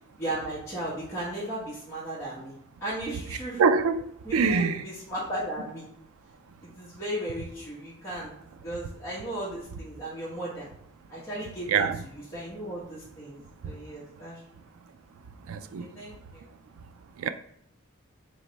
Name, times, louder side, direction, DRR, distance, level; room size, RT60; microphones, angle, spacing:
voice 1, 0.2-2.6 2.8-3.6 4.2-5.9 6.6-8.3 8.6-10.7 11.1-14.4 15.8-16.5, right 1 dB, 10° left, 1.1 m, -36 dB
voice 2, 3.6-4.0 4.3-4.8 11.7-12.0 15.5-15.8 17.2-17.3, right 5 dB, 70° right, 0.3 m, -23 dB
3.3 x 3.2 x 4.0 m
head